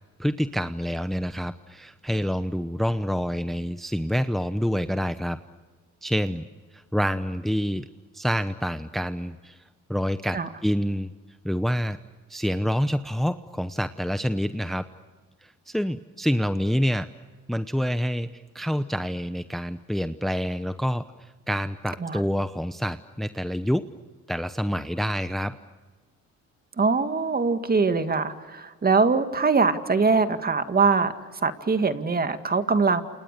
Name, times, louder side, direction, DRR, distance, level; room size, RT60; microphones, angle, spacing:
voice 1, 0.2-5.4 6.0-6.4 6.7-7.9 8.1-9.6 9.9-11.1 11.4-12.0 12.3-14.8 15.4-17.1 17.5-23.9 24.3-25.6, equal, ahead, 11 dB, 0.9 m, -27 dB
voice 2, 26.8-31.1 31.4-33.0, right 4 dB, 30° right, 9 dB, 2.1 m, -22 dB
29.0 x 28.5 x 6.8 m, 1.4 s
cardioid pair, 90°, 30 cm